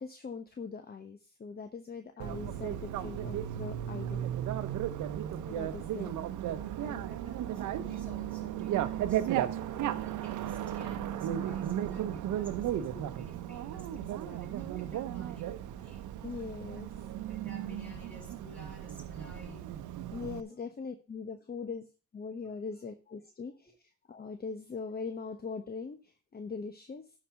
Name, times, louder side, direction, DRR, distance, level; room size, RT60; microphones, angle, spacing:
voice 1, 0.0-4.3 5.5-6.1 6.8-7.1 9.7-9.9 16.2-16.9 20.1-21.9 22.1-23.7 24.1-27.0, left 5 dB, 30° left, 1.0 m, -41 dB
Bicycle, 2.2-20.4, right 11 dB, 80° right, 0.8 m, -35 dB
voice 2, 6.6-16.1 17.3-19.7 23.7-23.8, left 2 dB, 5° left, 5.0 m, -53 dB
11.5 x 5.0 x 5.7 m
cardioid pair, 90°, 30 cm